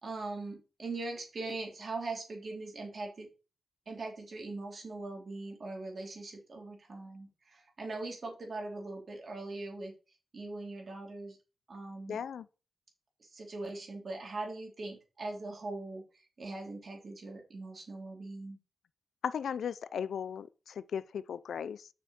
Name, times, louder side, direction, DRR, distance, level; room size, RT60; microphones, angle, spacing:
voice 1, 0.0-3.3 3.9-9.9 10.3-11.4 11.7-12.2 13.2-18.6, right 2 dB, 45° right, 3.4 m, -41 dB
voice 2, 12.1-12.5 19.2-21.9, left 7 dB, 85° left, 0.5 m, -36 dB
6.9 x 6.3 x 6.5 m
wide cardioid pair, 120°, 0 cm